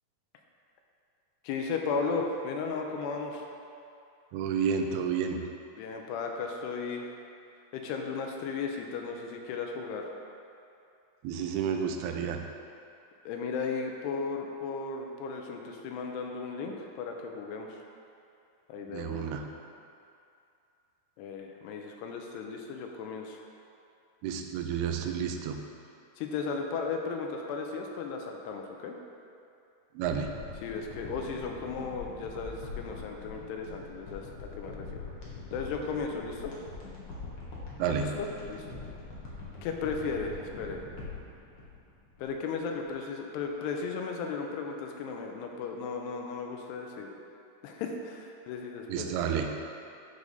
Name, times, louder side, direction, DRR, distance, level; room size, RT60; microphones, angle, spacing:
voice 1, 1.4-3.5 5.7-7.1 7.7-10.1 13.3-17.8 18.7-19.2 21.2-23.4 26.2-29.0 30.6-35.1 35.5-36.5 37.9-38.7 39.6-40.8 42.2-47.1 47.6-49.1, left 4 dB, 90° left, 2 dB, 2.8 m, -35 dB
voice 2, 4.3-5.4 11.2-12.4 18.9-19.5 24.2-25.7 29.9-30.4 37.8-38.2 48.9-49.6, right 7 dB, 80° right, 4 dB, 2.5 m, -31 dB
sound 1, 30.0-42.5 42.8-42.9, left 3 dB, 75° left, 1.2 m, -43 dB
12.0 x 4.9 x 4.0 m, 2.6 s
omnidirectional pair, 4.8 m